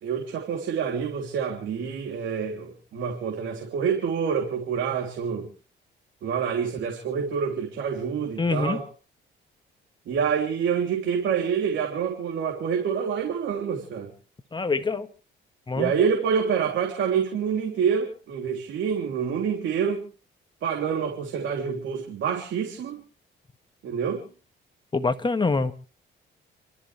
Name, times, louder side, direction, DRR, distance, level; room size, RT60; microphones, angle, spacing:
voice 1, 0.0-5.5 6.2-8.9 10.1-14.1 15.7-20.0 20.6-23.0 23.8-24.2, right 7 dB, 70° right, 2 dB, 3.3 m, -27 dB
voice 2, 8.4-8.8 14.5-15.1 15.7-15.9 24.9-25.7, left 3 dB, 25° left, 9 dB, 1.6 m, -25 dB
29.5 x 13.5 x 3.4 m, 0.35 s
cardioid pair, 90°, 20 cm